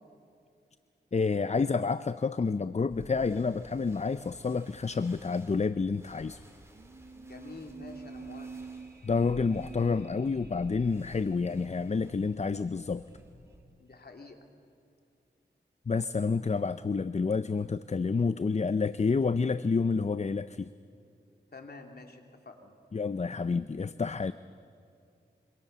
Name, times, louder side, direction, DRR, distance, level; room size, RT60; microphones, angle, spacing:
voice 1, 1.1-6.4 9.0-13.0 15.9-20.7 22.9-24.3, left 4 dB, 35° left, 14 dB, 0.6 m, -29 dB
sound 1, 2.9-13.6, equal, 15° right, 4.4 m, -54 dB
sound 2, 6.7-12.0 12.3-12.4, right 4 dB, 60° right, 1.8 m, -47 dB
voice 2, 7.3-8.5 13.8-14.4 21.5-22.7, left 3 dB, 60° left, 3 dB, 3.2 m, -48 dB
26.5 x 25.0 x 6.9 m, 2.5 s
cardioid pair, 60°, 18 cm